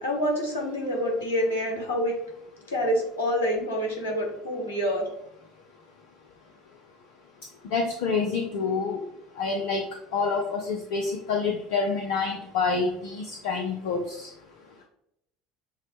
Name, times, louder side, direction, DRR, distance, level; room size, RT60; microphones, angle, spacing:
voice 1, 0.0-2.1 2.7-5.1, equal, 75° left, 0 dB, 1.0 m, -27 dB
voice 2, 7.7-9.0 9.4-9.8 10.1-14.3, left 4 dB, 60° left, 3 dB, 0.4 m, -27 dB
6.3 x 2.1 x 3.3 m, 0.79 s
figure-of-eight pair, 65°, 0 cm